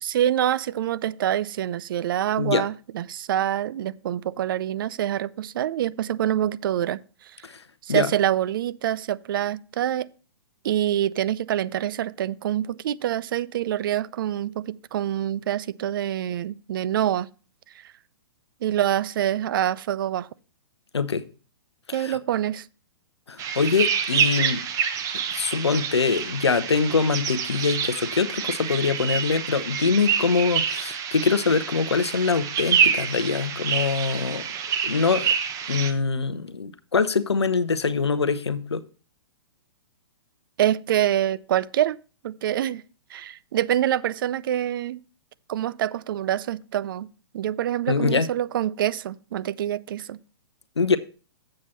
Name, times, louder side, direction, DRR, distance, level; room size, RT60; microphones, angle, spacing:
voice 1, 0.0-7.3 7.8-10.1 10.6-17.3 18.6-20.3 21.9-22.7 40.6-42.0 42.2-42.8 43.1-45.0 45.5-47.1 47.3-50.2, right 11 dB, 55° right, 0.5 m, -26 dB
voice 2, 20.9-21.3 21.9-22.2 23.3-24.6 25.3-34.5 34.8-35.3 35.7-38.8 47.9-48.3 50.8-51.0, left 5 dB, 85° left, 0.7 m, -24 dB
sound 1, 23.4-35.9, right 7 dB, 25° right, 1.0 m, -27 dB
7.8 x 7.6 x 4.2 m
figure-of-eight pair, 120°, 14 cm